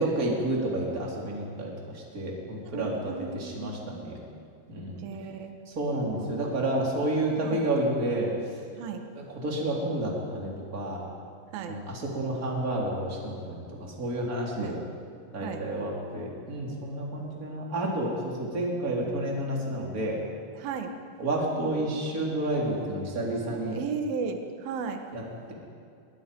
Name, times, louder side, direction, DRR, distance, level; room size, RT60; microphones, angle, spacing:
voice 1, 0.0-1.7 2.1-4.2 4.7-5.1 5.8-8.3 9.2-11.0 11.7-14.8 15.3-20.2 21.2-23.8 25.1-25.2, right 1 dB, 20° right, -2 dB, 3.7 m, -30 dB
voice 2, 2.7-4.1 5.0-5.5 6.2-6.3 7.4-7.7 8.8-9.0 11.5-11.8 14.6-14.8 15.4-15.6 20.6-20.9 22.6-25.0, right 5 dB, 60° right, 5 dB, 2.9 m, -36 dB
27.0 x 22.0 x 5.5 m, 2.4 s
omnidirectional pair, 5.4 m